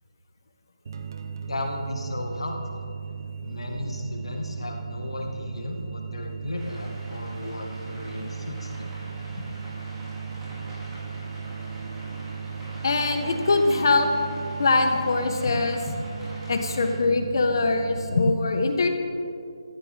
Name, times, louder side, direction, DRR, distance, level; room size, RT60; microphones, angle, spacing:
sound 1, 0.8-18.3, right 6 dB, 45° right, 1.0 m, -36 dB
voice 1, 1.4-2.8 3.4-9.0, left 1 dB, 85° left, 2 dB, 2.0 m, -34 dB
sound 2, 6.5-16.9, equal, 10° right, 3.1 m, -44 dB
voice 2, 12.8-14.1 14.6-16.0 16.5-18.9, left 3 dB, 50° left, 5 dB, 1.5 m, -22 dB
15.0 x 14.0 x 3.7 m, 2.4 s
figure-of-eight pair, 165°, 3 cm